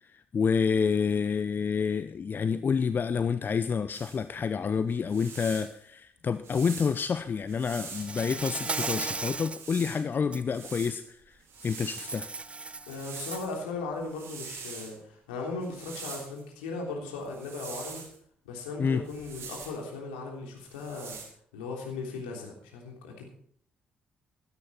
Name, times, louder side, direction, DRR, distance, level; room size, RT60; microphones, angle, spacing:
voice 1, 0.0-12.3 18.8-19.0, left 6 dB, 40° left, 12 dB, 0.7 m, -28 dB
sound 1, 3.9-4.2 4.9-5.7 6.4-8.1 8.5-10.0 10.4-12.3 12.9-13.6 13.9-14.9 15.6-16.4 17.3-18.2 19.0-19.8 20.6-21.3, right 5 dB, 60° right, 4.0 m, -44 dB
Insect, 7.9-9.6 10.1-10.4 11.6-13.5, right 3 dB, 25° right, 0.6 m, -36 dB
voice 2, 12.9-18.0 18.4-21.2 21.5-23.3, left 3 dB, 80° left, 0 dB, 3.4 m, -37 dB
16.0 x 13.0 x 4.4 m, 0.63 s
figure-of-eight pair, 40°, 5 cm